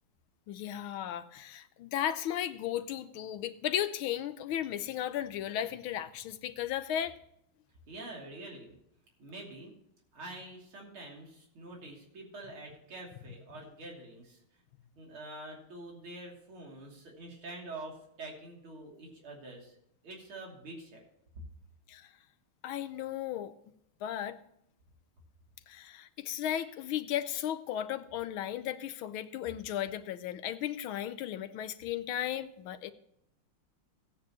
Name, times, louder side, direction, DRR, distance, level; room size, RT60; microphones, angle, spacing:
voice 1, 0.5-7.2 21.9-22.1 22.6-23.5 24.0-24.4 25.7-32.9, left 11 dB, 85° left, 12 dB, 1.6 m, -35 dB
voice 2, 7.9-8.8 9.2-9.7 10.1-14.4 15.0-19.8 20.0-21.0, right 2 dB, 80° right, -1 dB, 3.8 m, -46 dB
16.0 x 9.5 x 3.0 m, 0.75 s
omnidirectional pair, 2.3 m